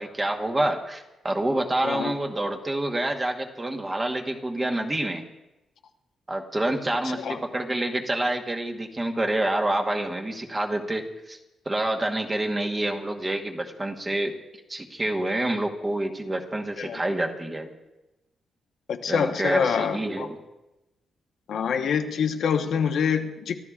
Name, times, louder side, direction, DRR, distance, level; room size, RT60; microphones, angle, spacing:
voice 1, 0.0-5.3 6.3-11.4 11.6-14.3 14.7-17.7 19.1-20.4, right 1 dB, 15° right, 2 dB, 1.2 m, -27 dB
voice 2, 1.8-2.1 7.2-7.4 16.8-17.0 18.9-20.3 21.5-23.6, left 7 dB, 60° left, 4 dB, 1.0 m, -26 dB
29.0 x 14.5 x 2.4 m, 1.0 s
wide cardioid pair, 180°, 0 cm